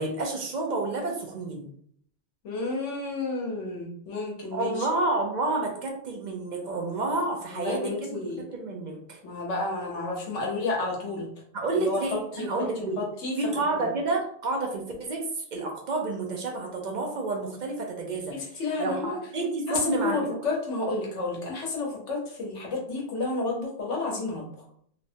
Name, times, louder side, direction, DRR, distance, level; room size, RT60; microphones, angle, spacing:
voice 1, 0.0-1.7 4.5-8.1 8.4-9.2 11.5-13.0 13.4-20.4, right 2 dB, 60° right, 1 dB, 0.5 m, -30 dB
voice 2, 2.4-4.9 7.5-8.4 9.2-11.3 11.8-12.5 12.8-13.4 13.7-13.9 18.3-19.2 19.7-24.4, left 3 dB, 90° left, -2 dB, 1.2 m, -31 dB
3.0 x 2.0 x 2.7 m, 0.63 s
omnidirectional pair, 1.2 m